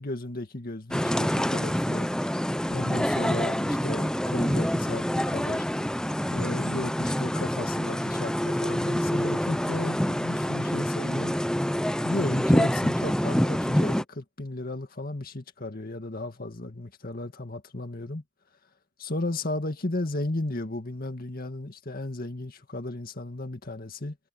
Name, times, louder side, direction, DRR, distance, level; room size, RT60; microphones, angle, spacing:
voice 1, 0.0-2.1 2.7-5.6 6.3-11.3 12.0-18.2 19.0-24.2, left 2 dB, 50° left, 2.0 m, -34 dB
sound 1, 0.9-14.0, equal, 5° left, 0.8 m, -26 dB
head